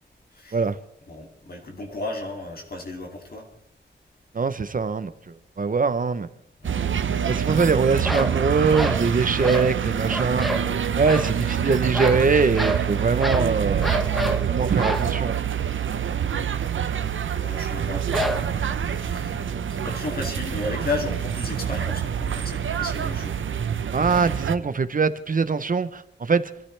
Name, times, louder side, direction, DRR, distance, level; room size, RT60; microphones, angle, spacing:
voice 1, 1.1-3.5 6.6-6.8 16.6-23.4, left 2 dB, 50° left, 2.6 m, -34 dB
voice 2, 4.3-6.3 7.3-10.5 11.0-14.0 14.5-15.4 23.9-26.5, right 4 dB, 45° right, 0.7 m, -23 dB
sound 1, 6.6-24.6, right 8 dB, 85° right, 0.7 m, -26 dB
sound 2, 8.0-8.4 8.7-9.1 9.4-9.7 10.1-10.7 11.0-11.3 11.9-12.3 12.6-12.9 13.2-13.5 13.8-14.4 14.8-15.1 18.1-18.7, equal, ahead, 1.0 m, -27 dB
27.0 x 13.5 x 3.3 m
wide cardioid pair, 130°, 20 cm